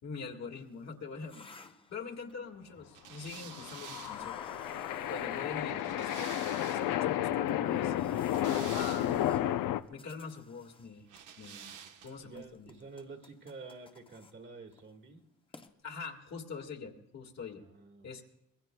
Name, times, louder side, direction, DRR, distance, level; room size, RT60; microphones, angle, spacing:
voice 1, 0.0-4.4 5.1-8.1 8.7-9.4 9.9-11.1 11.4-11.7 12.0-12.7 15.8-17.6 18.0-18.2, left 5 dB, 55° left, 1 dB, 1.8 m, -43 dB
sound 1, 0.6-2.5 3.2-3.7 4.0-6.2 6.8-6.9 7.5-10.9 11.2-11.8 12.1-14.3 14.7-14.9 15.2-15.3 15.5-15.7, left 3 dB, 15° left, 0.7 m, -54 dB
sound 2, 2.9-7.0 8.0-9.4 11.1-12.3, right 8 dB, 70° right, 1.1 m, -50 dB
sound 3, 3.4-9.8, left 12 dB, 80° left, 0.6 m, -32 dB
voice 2, 12.2-15.2 17.5-18.2, right 4 dB, 35° right, 3 dB, 1.6 m, -49 dB
25.5 x 21.5 x 2.3 m, 0.85 s
cardioid pair, 165°, 32 cm